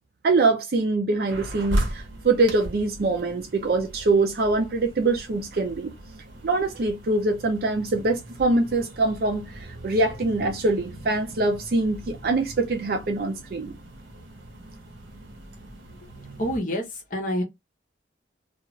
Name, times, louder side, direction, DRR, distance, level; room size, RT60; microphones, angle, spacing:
voice 1, 0.2-5.9 6.4-13.7, right 3 dB, 50° right, 0.4 m, -24 dB
Heavy traffic from a window closed then open, 1.3-16.6, right 1 dB, 85° right, 0.9 m, -37 dB
voice 2, 16.4-16.8 17.1-17.4, equal, 45° left, 0.8 m, -26 dB
2.4 x 2.3 x 3.0 m
head